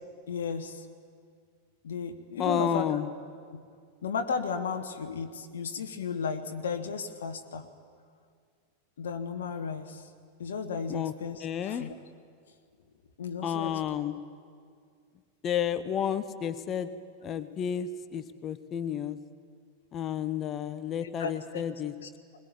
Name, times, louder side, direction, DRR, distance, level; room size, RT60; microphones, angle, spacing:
voice 1, 0.3-0.9 1.8-3.0 3.5-3.6 4.0-7.6 9.0-10.1 10.4-11.9 13.2-13.8 21.0-21.6 22.0-22.1, left 5 dB, 65° left, 6 dB, 1.3 m, -34 dB
voice 2, 2.4-3.1 10.9-11.1 11.4-11.9 13.4-14.2 15.4-16.9 17.2-19.2 19.9-21.9, left 9 dB, 30° left, 12 dB, 0.9 m, -31 dB
21.5 x 20.5 x 8.8 m, 2.1 s
figure-of-eight pair, 90°, 0 cm